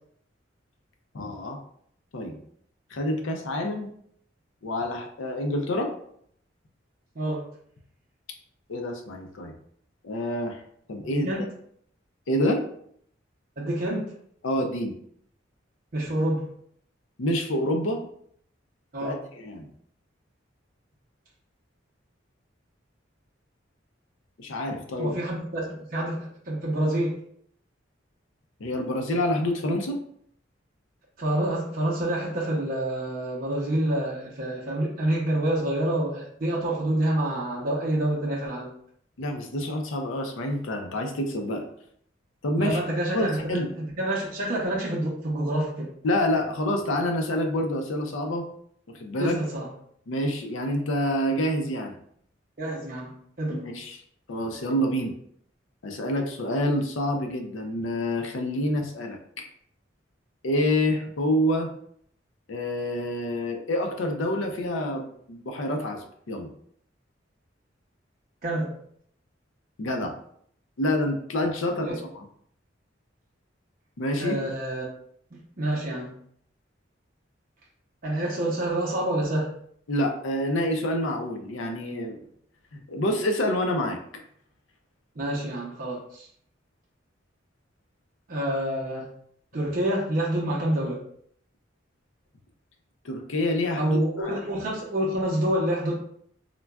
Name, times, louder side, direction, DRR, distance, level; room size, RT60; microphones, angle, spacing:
voice 1, 1.1-1.6 2.1-2.4 2.9-3.9 4.6-5.9 8.7-9.5 10.0-10.6 10.9-11.3 12.3-12.6 14.4-14.9 17.2-18.0 19.0-19.7 24.4-25.2 28.6-30.0 39.2-41.7 42.4-42.8 43.1-43.7 46.0-48.5 48.9-49.4 50.1-51.9 53.5-54.0 54.3-55.1 55.8-59.5 60.4-61.7 62.5-66.5 69.8-70.2 70.8-72.2 74.0-74.4 79.9-82.2 82.7-84.0 93.0-94.3, left 1 dB, 85° left, 3 dB, 0.5 m, -27 dB
voice 2, 7.1-7.5 11.0-11.5 13.6-14.1 15.9-16.5 18.9-19.2 25.0-27.2 31.2-38.7 42.6-43.6 44.0-45.9 49.2-49.7 52.6-53.6 68.4-68.7 71.8-72.0 74.2-74.9 75.3-76.2 78.0-79.5 85.2-86.3 88.3-89.1 89.5-91.0 93.8-95.9, right 1 dB, 45° right, -4 dB, 0.6 m, -27 dB
3.7 x 2.2 x 2.2 m, 0.65 s
head